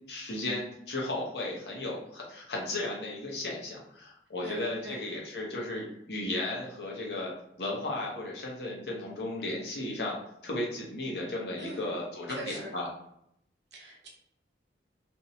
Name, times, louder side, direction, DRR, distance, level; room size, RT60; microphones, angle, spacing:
voice 1, 0.1-7.3 7.6-12.9, left 2 dB, 65° left, -2 dB, 0.8 m, -35 dB
voice 2, 4.4-5.0 11.6-12.0 12.3-12.7 13.7-14.1, right 2 dB, 75° right, -1 dB, 0.7 m, -42 dB
2.6 x 2.1 x 2.7 m, 0.75 s
head